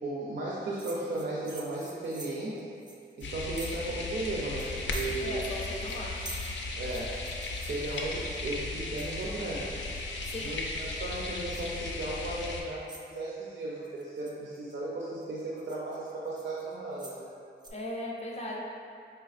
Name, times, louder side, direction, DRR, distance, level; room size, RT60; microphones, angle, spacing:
voice 1, 0.0-2.7 3.2-5.4 6.8-7.1 7.6-9.8 10.4-17.3, right 2 dB, 85° right, -6 dB, 0.5 m, -35 dB
sound 1, 0.8-4.0 4.2-4.3 4.6-5.6 5.9-8.4 9.0-9.4 9.8-10.5 10.8-11.2 11.5-11.8 12.4-12.5 12.9-13.2 13.8-14.7 15.2-17.3 17.6-17.7, right 2 dB, 25° right, 0.4 m, -47 dB
sound 2, 3.2-12.6, left 3 dB, 85° left, 0.4 m, -36 dB
voice 2, 5.2-6.3 10.3-10.5 17.7-18.6, left 1 dB, 35° left, -2 dB, 0.5 m, -37 dB
4.4 x 3.4 x 2.4 m, 2.4 s
wide cardioid pair, 155°, 19 cm